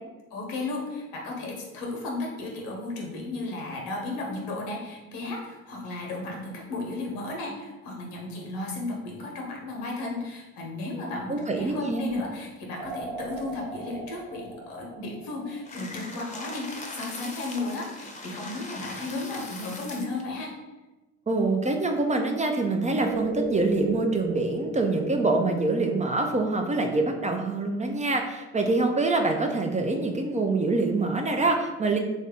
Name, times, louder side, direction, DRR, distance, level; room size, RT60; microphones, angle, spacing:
voice 1, 0.3-20.5, left 2 dB, 75° left, -1 dB, 1.0 m, -34 dB
voice 2, 11.3-12.2 21.3-32.0, right 3 dB, 20° right, 3 dB, 0.5 m, -25 dB
sound 1, 12.8-16.1 23.0-25.8, right 2 dB, 70° right, 0.8 m, -37 dB
sound 2, 15.6-20.2, left 2 dB, 20° left, 0.8 m, -40 dB
3.2 x 2.6 x 3.6 m, 1.1 s
hypercardioid pair, 60°, 34 cm